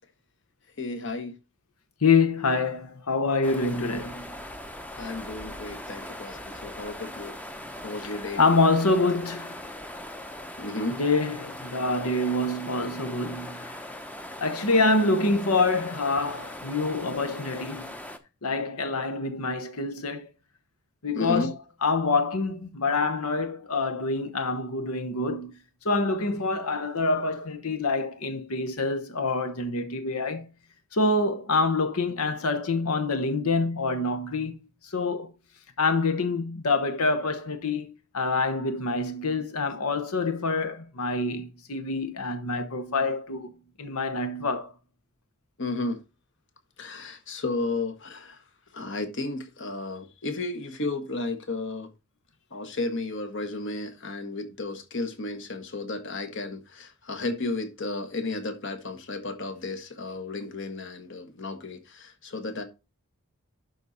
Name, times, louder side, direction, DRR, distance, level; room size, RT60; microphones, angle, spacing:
voice 1, 0.8-1.3 5.0-7.4 7.8-8.4 10.6-11.0 21.1-21.5 45.6-46.0 46.8-48.4 48.7-51.9 52.5-62.6, left 2 dB, 55° left, 1.3 m, -33 dB
voice 2, 2.0-4.3 8.0-9.6 11.0-13.8 14.4-17.9 18.4-20.3 21.0-21.5 21.8-25.5 25.8-30.5 30.9-34.6 34.8-35.3 35.8-43.5 43.8-44.7, left 3 dB, 80° left, 1.1 m, -26 dB
sound 1, 3.4-18.2, left 1 dB, 5° left, 0.7 m, -40 dB
11.5 x 4.1 x 4.1 m
head